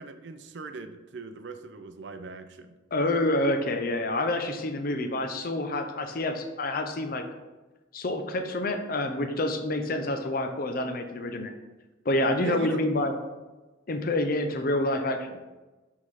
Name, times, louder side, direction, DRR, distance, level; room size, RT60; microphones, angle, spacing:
voice 1, 0.0-2.8 12.4-12.8, right 3 dB, 65° right, 9 dB, 0.5 m, -40 dB
voice 2, 2.9-7.2 7.9-11.5 12.1-13.1 13.9-15.4, left 1 dB, 50° left, 6 dB, 0.6 m, -28 dB
6.2 x 3.8 x 4.7 m, 1.2 s
head